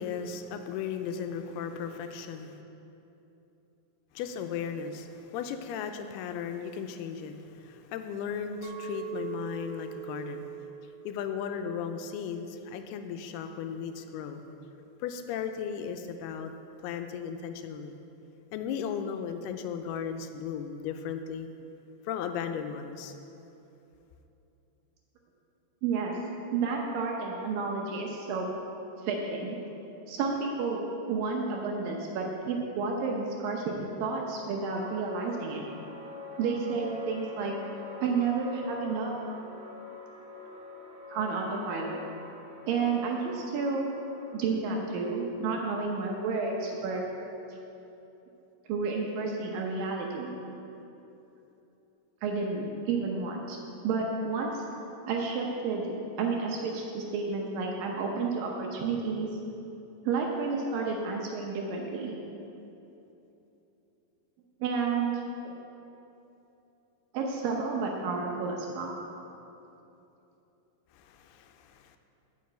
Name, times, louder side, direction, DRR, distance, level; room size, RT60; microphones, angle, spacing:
voice 1, 0.0-2.6 4.1-10.7 11.1-14.4 15.0-16.5 16.8-18.0 18.5-21.5 22.0-23.1 70.9-72.0, left 7 dB, 85° left, 7 dB, 2.5 m, -36 dB
Chink clink, 8.6-12.9 13.4-13.8, right 10 dB, 90° right, 2.7 m, -43 dB
voice 2, 25.8-26.2 26.5-28.5 29.0-29.6 30.1-30.8 31.1-35.6 36.4-37.5 38.0-39.2 41.1-42.0 42.7-43.9 44.3-47.0 48.7-50.3 52.2-53.6 53.8-54.6 55.1-59.3 60.1-62.1 64.6-65.2 67.1-68.9, right 4 dB, 75° right, 0 dB, 2.2 m, -31 dB
sound 1, 34.7-44.3, left 3 dB, 40° right, 2.5 m, -45 dB
8.6 x 5.9 x 7.6 m, 2.9 s
omnidirectional pair, 4.6 m